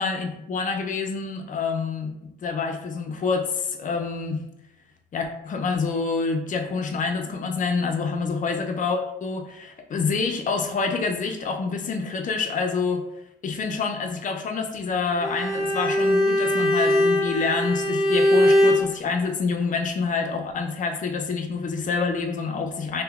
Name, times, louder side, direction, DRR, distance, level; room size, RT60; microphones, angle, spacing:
voice 1, 0.0-2.1 2.4-4.4 5.1-13.0 13.4-23.0, left 4 dB, 40° left, 4 dB, 0.4 m, -27 dB
Bowed string instrument, 15.2-18.9, left 1 dB, ahead, 0.7 m, -21 dB
2.9 x 2.1 x 2.3 m, 0.86 s
cardioid pair, 90°, 20 cm